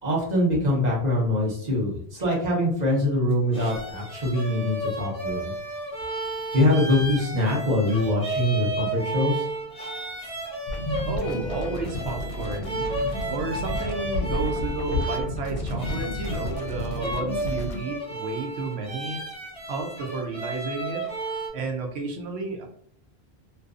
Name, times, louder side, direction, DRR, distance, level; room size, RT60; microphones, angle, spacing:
voice 1, 0.0-5.5 6.5-9.5, left 1 dB, 45° right, -4 dB, 0.9 m, -23 dB
sound 1, 3.3-21.5, right 2 dB, 5° left, 0.6 m, -33 dB
sound 2, 10.7-17.8, left 1 dB, 65° left, 0.7 m, -31 dB
voice 2, 11.1-12.9 13.3-19.2 19.7-21.1 21.5-22.7, right 3 dB, 80° right, 2 dB, 0.8 m, -32 dB
2.5 x 2.3 x 2.4 m, 0.63 s
omnidirectional pair, 1.1 m